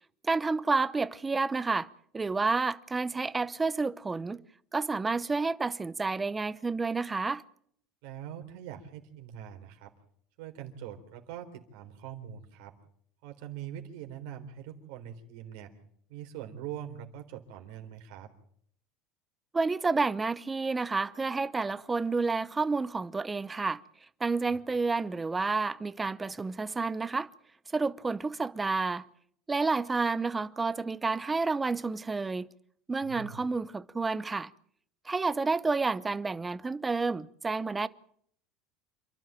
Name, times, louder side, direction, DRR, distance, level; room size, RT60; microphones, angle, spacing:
voice 1, 0.2-4.4 4.7-7.4 19.5-23.8 24.2-27.3 27.7-29.1 29.5-32.5 32.9-34.5 35.0-37.9, right 4 dB, 15° right, 0.8 m, -30 dB
voice 2, 8.0-9.9 10.4-12.7 13.2-15.7 16.1-18.3 24.4-24.6 33.0-33.4, right 10 dB, 75° right, 3.8 m, -43 dB
28.0 x 12.0 x 9.1 m
supercardioid pair, 130°, 0 cm